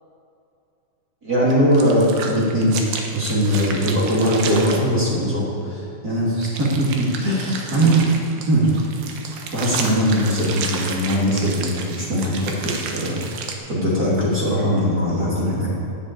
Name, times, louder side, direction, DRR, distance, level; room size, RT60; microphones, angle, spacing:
voice 1, 1.2-2.7 3.1-8.0 8.5-8.7 9.5-13.2 13.7-15.7, equal, 25° right, -7 dB, 3.2 m, -20 dB
sound 1, 1.5-4.8 6.4-13.5, right 5 dB, 80° right, 2.9 m, -32 dB
12.0 x 7.8 x 8.5 m, 2.8 s
omnidirectional pair, 4.2 m